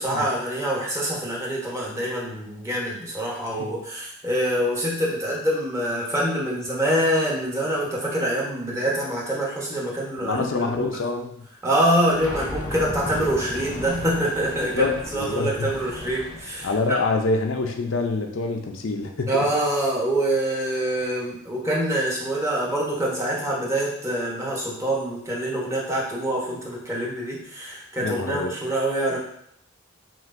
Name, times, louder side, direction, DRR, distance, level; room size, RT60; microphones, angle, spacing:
voice 1, 0.0-10.5 10.8-10.9 11.6-17.0 19.3-29.2, right 1 dB, 15° right, -4 dB, 1.0 m, -25 dB
voice 2, 10.2-11.4 14.7-15.7 16.6-19.3 28.0-28.5, left 3 dB, 70° left, 3 dB, 0.5 m, -26 dB
sound 1, 12.1-17.1, left 1 dB, 20° left, 0.7 m, -35 dB
5.9 x 2.5 x 2.5 m, 0.72 s
head